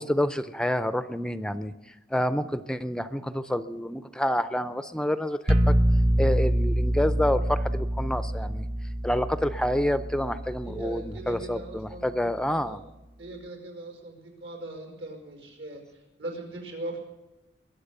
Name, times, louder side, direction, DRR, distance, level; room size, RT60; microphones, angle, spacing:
voice 1, 0.0-1.7 2.1-5.7 6.2-8.7 9.0-12.8, left 1 dB, 5° left, 12 dB, 0.4 m, -28 dB
sound 1, 5.5-11.3, equal, 35° right, 0.9 m, -26 dB
voice 2, 10.6-12.1 12.5-12.8 13.2-15.8 16.2-17.0, right 2 dB, 80° right, 3 dB, 5.1 m, -39 dB
22.5 x 7.8 x 6.8 m, 1.0 s
head